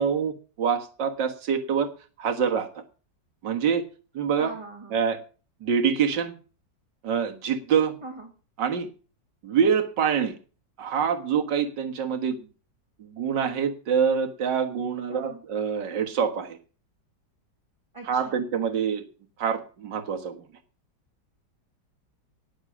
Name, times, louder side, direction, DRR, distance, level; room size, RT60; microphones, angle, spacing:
voice 1, 0.0-1.9 2.2-2.8 3.4-3.8 4.1-4.5 4.9-5.2 5.6-6.3 7.0-8.0 8.6-8.9 9.4-10.4 10.8-12.5 13.0-16.6 18.0-19.0 19.4-20.4, right 7 dB, 75° right, 5 dB, 2.2 m, -25 dB
voice 2, 4.4-5.0 8.0-8.3 15.1-15.4 17.9-18.4, right 3 dB, 15° right, 3 dB, 1.9 m, -41 dB
18.5 x 7.3 x 6.2 m, 0.37 s
omnidirectional pair, 1.9 m